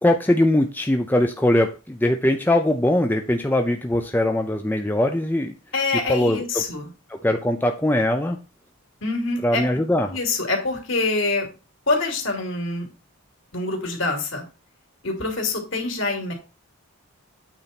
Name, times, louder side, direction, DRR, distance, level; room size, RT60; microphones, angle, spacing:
voice 1, 0.0-5.5 6.1-6.6 7.1-8.4 9.4-10.2, left 1 dB, 10° left, 4 dB, 0.5 m, -21 dB
voice 2, 5.7-6.9 9.0-9.6 10.1-11.5 11.9-12.9 13.5-14.4 15.0-16.3, left 3 dB, 60° left, 1 dB, 3.0 m, -25 dB
8.9 x 4.1 x 5.9 m, 0.31 s
head